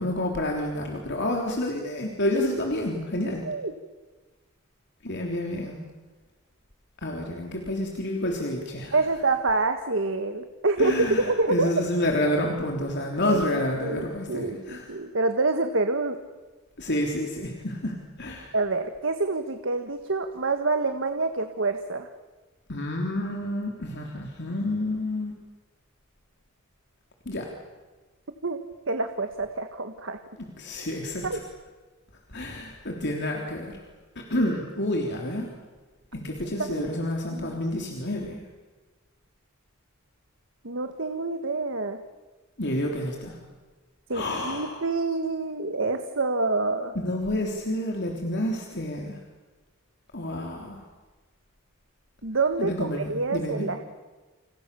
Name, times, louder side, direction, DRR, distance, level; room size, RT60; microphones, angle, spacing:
voice 1, 0.0-3.4 5.0-5.8 7.0-9.0 10.8-15.0 16.8-18.5 22.7-25.3 27.3-27.5 30.6-31.4 32.3-33.8 34.2-35.5 36.1-38.4 42.6-43.4 44.1-44.8 47.0-49.2 50.1-50.8 52.6-53.7, left 1 dB, 55° left, 1 dB, 3.5 m, -29 dB
voice 2, 8.9-11.7 13.2-16.2 18.5-22.1 28.4-28.6 28.9-30.2 31.2-31.4 36.7-36.9 37.3-37.6 40.6-42.0 44.1-46.9 52.2-53.8, right 3 dB, 60° right, 7 dB, 1.6 m, -27 dB
29.0 x 28.0 x 7.0 m, 1.3 s
head